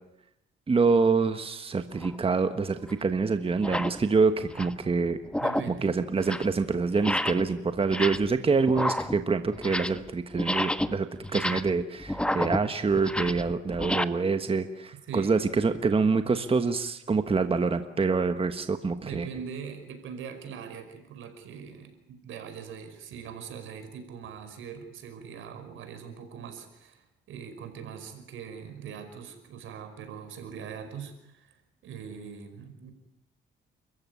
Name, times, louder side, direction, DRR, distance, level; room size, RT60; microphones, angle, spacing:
voice 1, 0.7-5.2 5.8-19.3, right 4 dB, 30° right, 9 dB, 1.4 m, -26 dB
sound 1, 2.0-2.2 2.9-3.0 3.5-4.0 4.4-4.8 5.2-5.8 6.1-6.6 7.0-7.5 7.8-8.4 8.7-10.1 10.3-14.0, left 1 dB, 5° left, 1.3 m, -30 dB
voice 2, 5.4-5.9 15.1-15.4 19.0-32.9, right 7 dB, 80° right, 7 dB, 5.2 m, -42 dB
29.5 x 14.5 x 9.8 m, 0.83 s
cardioid pair, 90°, 20 cm